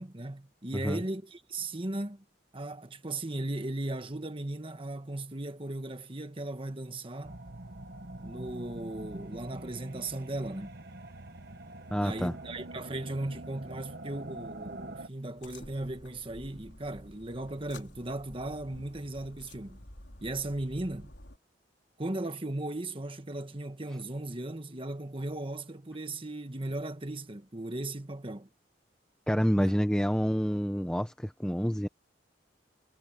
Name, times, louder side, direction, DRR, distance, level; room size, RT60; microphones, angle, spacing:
voice 1, 0.0-2.2 2.5-7.4 8.2-10.7 12.0-19.8 20.2-21.1 22.0-28.5 29.6-29.7, right 2 dB, 30° right, 1.5 m, -37 dB
sound 1, 7.2-15.1, right 1 dB, 60° right, 1.5 m, -44 dB
voice 2, 11.9-12.3 29.3-31.9, equal, 5° left, 1.0 m, -28 dB
sound 2, 15.4-21.4, left 1 dB, 70° left, 4.1 m, -51 dB
head